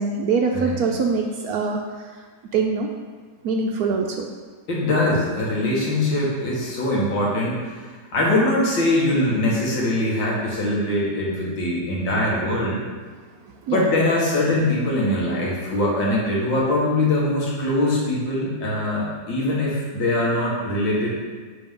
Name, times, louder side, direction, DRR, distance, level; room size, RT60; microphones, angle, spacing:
voice 1, 0.0-2.1 2.5-2.9 3.4-4.3 13.7-13.8, right 4 dB, 70° right, 2 dB, 0.9 m, -23 dB
voice 2, 4.7-7.8 8.1-12.8 13.7-21.2, left 1 dB, 85° left, -4 dB, 2.3 m, -22 dB
9.6 x 4.3 x 3.7 m, 1.4 s
omnidirectional pair, 2.0 m